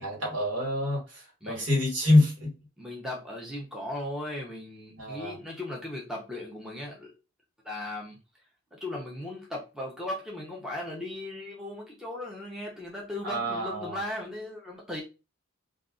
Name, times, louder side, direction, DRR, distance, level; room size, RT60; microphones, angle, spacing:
voice 1, 0.0-2.5 5.0-5.4 13.2-14.0, left 1 dB, 65° right, 1.5 m, -26 dB
voice 2, 2.8-7.1 7.6-8.2 8.7-15.0, left 1 dB, ahead, 0.6 m, -37 dB
2.4 x 2.3 x 3.6 m
head